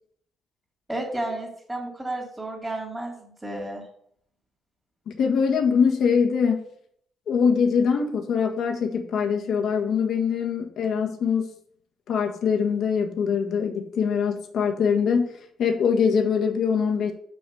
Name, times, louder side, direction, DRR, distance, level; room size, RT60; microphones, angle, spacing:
voice 1, 0.9-3.8, right 1 dB, 10° right, -6 dB, 2.8 m, -32 dB
voice 2, 5.1-6.7 7.3-11.5 12.1-15.3 15.6-17.1, left 6 dB, 70° left, 3 dB, 1.5 m, -23 dB
6.2 x 5.8 x 6.4 m, 0.65 s
cardioid pair, 90°, 0 cm